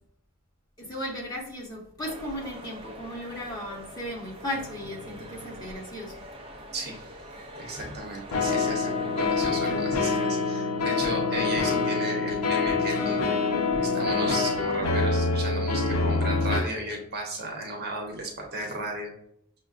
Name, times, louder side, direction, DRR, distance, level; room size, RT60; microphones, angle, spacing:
voice 1, 0.8-6.2, left 1 dB, 20° left, -5 dB, 1.1 m, -36 dB
sound 1, 2.0-9.5, equal, 25° right, 0.4 m, -44 dB
sound 2, 4.5-5.6 8.3-16.6, left 4 dB, 75° left, 0.7 m, -26 dB
voice 2, 6.7-13.4 13.8-19.1, right 2 dB, 50° right, 0 dB, 0.8 m, -35 dB
6.1 x 2.1 x 2.4 m, 0.70 s
head